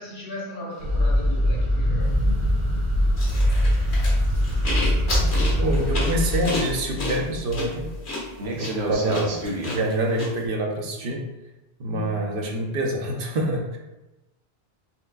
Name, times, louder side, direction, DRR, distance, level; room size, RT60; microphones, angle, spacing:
voice 1, 0.0-2.2 4.1-4.2, right 1 dB, 55° left, -3 dB, 1.1 m, -36 dB
sound 1, 0.7-6.2, equal, 30° right, 0.8 m, -41 dB
sound 2, 0.8-8.1 8.4-9.8, equal, 80° right, 1.0 m, -23 dB
sound 3, 3.2-10.3, left 1 dB, 85° left, 1.7 m, -31 dB
voice 2, 5.6-7.9 8.5-11.3 11.8-13.8, right 1 dB, 60° right, 1 dB, 0.8 m, -26 dB
4.5 x 3.4 x 2.4 m, 1.0 s
omnidirectional pair, 1.1 m